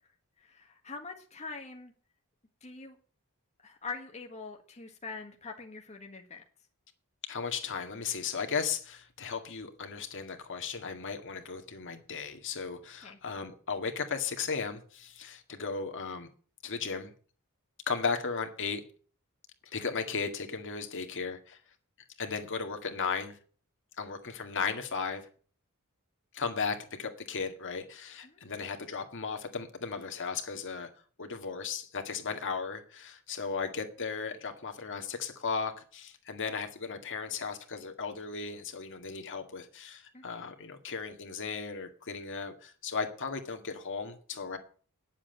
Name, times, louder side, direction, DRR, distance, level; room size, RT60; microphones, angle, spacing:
voice 1, 0.4-1.9 2.6-3.0 3.6-6.4 13.0-13.2 28.2-28.4 40.1-40.4, left 4 dB, 30° left, 1.6 m, -44 dB
voice 2, 7.2-16.3 16.6-17.1 17.9-18.8 19.7-21.6 22.2-23.4 24.0-25.2 26.3-30.9 31.2-44.6, left 5 dB, 60° left, 2.0 m, -36 dB
10.0 x 7.7 x 8.9 m
head